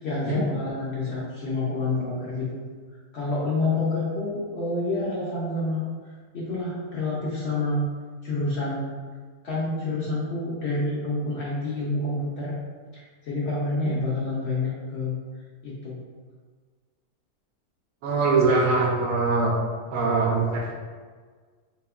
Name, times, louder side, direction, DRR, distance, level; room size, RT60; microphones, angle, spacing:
voice 1, 0.0-2.6 3.1-5.8 6.3-7.9 8.2-8.9 9.4-12.6 13.2-15.2 15.6-16.0 19.9-20.1, left 2 dB, 60° left, -6 dB, 0.7 m, -28 dB
voice 2, 18.0-19.5 19.9-20.7, right 3 dB, 70° right, -2 dB, 0.9 m, -23 dB
3.5 x 2.8 x 2.3 m, 1.5 s
omnidirectional pair, 1.6 m